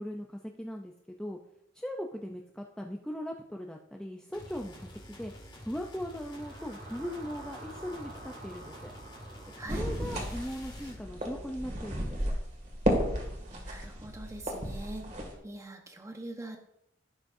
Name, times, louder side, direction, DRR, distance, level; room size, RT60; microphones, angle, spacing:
voice 1, 0.0-1.4 1.7-5.3 5.6-8.9 9.7-12.4, equal, 5° left, 1 dB, 0.5 m, -39 dB
sound 1, 4.3-11.0, equal, 25° left, 1.9 m, -49 dB
sound 2, 6.0-10.5, right 2 dB, 60° right, 2.3 m, -49 dB
voice 2, 9.6-9.9 13.5-15.1 15.4-16.6, right 1 dB, 15° right, 4 dB, 1.1 m, -43 dB
sound 3, 9.7-15.3, equal, 40° right, 2.1 m, -33 dB
16.0 x 6.2 x 2.6 m, 0.78 s
head